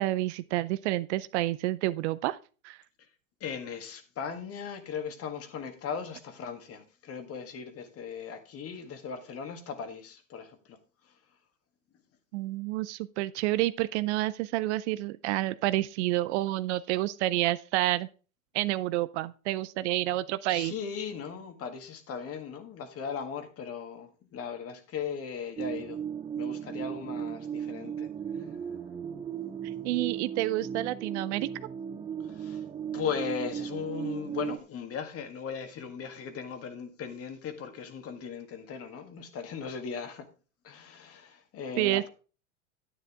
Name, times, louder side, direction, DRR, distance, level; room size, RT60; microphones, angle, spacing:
voice 1, 0.0-2.4 2.6-2.8 12.3-18.1 18.5-20.7 29.8-31.5 41.8-42.1, right 16 dB, 55° right, 0.6 m, -29 dB
voice 2, 3.4-10.8 11.0-11.1 20.5-26.0 26.4-28.1 28.4-28.5 32.2-32.6 32.9-40.3 40.6-42.1, left 6 dB, 35° left, 1.8 m, -38 dB
sound 1, 25.6-34.6, right 8 dB, 15° right, 0.4 m, -36 dB
10.0 x 9.1 x 3.6 m
hypercardioid pair, 100°, 41 cm